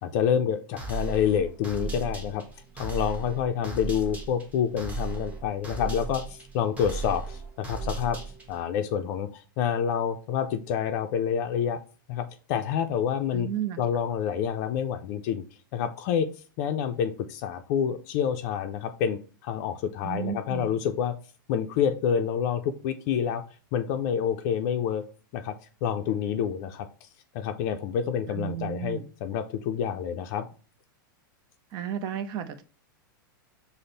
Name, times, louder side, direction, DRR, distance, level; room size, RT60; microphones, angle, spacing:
voice 1, 0.0-2.4 2.8-8.2 8.5-11.8 12.1-13.5 13.8-15.4 15.7-16.3 16.6-21.2 21.5-23.4 23.7-25.0 25.3-25.5 25.8-26.9 27.3-30.4, left 8 dB, 55° left, 8 dB, 0.4 m, -28 dB
sound 1, 0.8-8.6, right 4 dB, 15° right, 1.1 m, -36 dB
voice 2, 13.3-13.8 20.0-20.8 28.3-29.1 31.7-32.6, right 10 dB, 40° right, 11 dB, 0.5 m, -33 dB
5.1 x 2.1 x 3.9 m, 0.37 s
hypercardioid pair, 115°, 11 cm